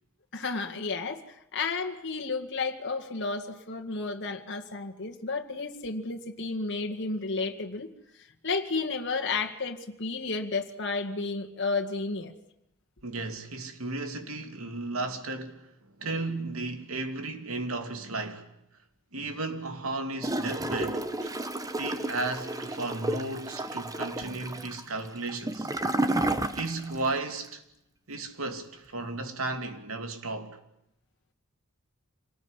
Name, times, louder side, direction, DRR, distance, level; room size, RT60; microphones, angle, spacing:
voice 1, 0.3-7.9 8.2-12.3, left 4 dB, 60° left, 2.1 m, -32 dB
voice 2, 13.0-18.5 19.1-21.3 21.8-25.7 26.5-27.6 28.1-30.6, right 2 dB, 85° right, 2.8 m, -34 dB
Gurgling / Toilet flush, 20.2-27.1 27.4-27.5, right 1 dB, 15° right, 1.2 m, -31 dB
27.0 x 19.5 x 9.9 m
head